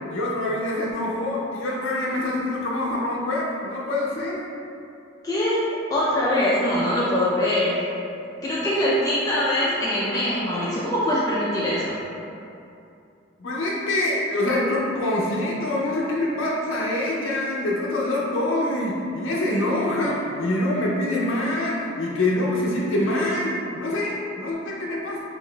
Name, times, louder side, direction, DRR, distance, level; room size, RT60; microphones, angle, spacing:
voice 1, 0.1-4.4 13.4-25.2, left 1 dB, 75° left, -4 dB, 0.5 m, -25 dB
voice 2, 5.2-7.8 8.4-11.9, left 1 dB, 20° left, -8 dB, 0.3 m, -23 dB
4.8 x 2.5 x 2.2 m, 2.7 s
head